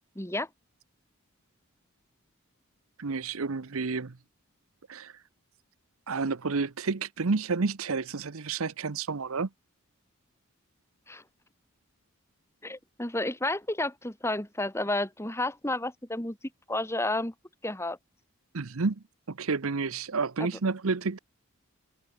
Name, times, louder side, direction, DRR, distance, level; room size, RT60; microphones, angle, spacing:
voice 1, 0.2-0.5 11.1-11.2 12.6-16.4 16.7-17.3 17.6-18.0 20.4-20.5, left 2 dB, 10° left, 2.1 m, -31 dB
voice 2, 3.0-4.2 4.9-5.1 6.1-9.5 18.5-21.2, right 4 dB, 75° right, 0.8 m, -30 dB
head